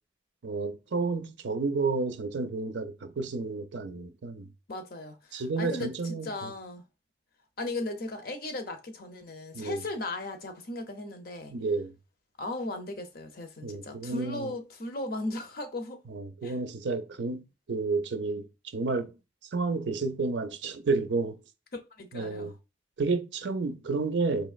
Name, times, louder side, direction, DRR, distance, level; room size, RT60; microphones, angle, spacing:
voice 1, 0.4-4.5 5.3-6.5 9.5-9.8 11.5-11.9 13.6-14.5 16.1-18.5 18.7-19.1 19.5-21.4 22.1-22.5 23.0-24.5, right 3 dB, 70° right, 0.5 m, -31 dB
voice 2, 4.7-6.8 7.6-11.5 12.4-16.0 16.4-16.5 22.0-22.5, left 2 dB, 50° left, 0.7 m, -37 dB
4.4 x 3.0 x 2.4 m
head